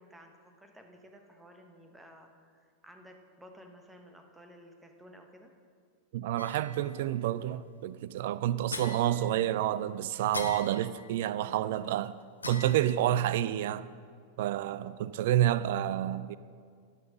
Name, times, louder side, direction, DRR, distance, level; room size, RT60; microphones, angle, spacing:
voice 1, 0.0-5.5, equal, 10° right, 1.0 m, -54 dB
voice 2, 6.1-12.2 12.5-13.9 14.4-16.4, right 12 dB, 55° right, 0.3 m, -29 dB
sound 1, 6.4-7.1 8.7-9.8 10.3-11.4 12.4-13.4, left 3 dB, 80° left, 0.6 m, -42 dB
12.5 x 5.7 x 5.5 m
figure-of-eight pair, 90°, 0 cm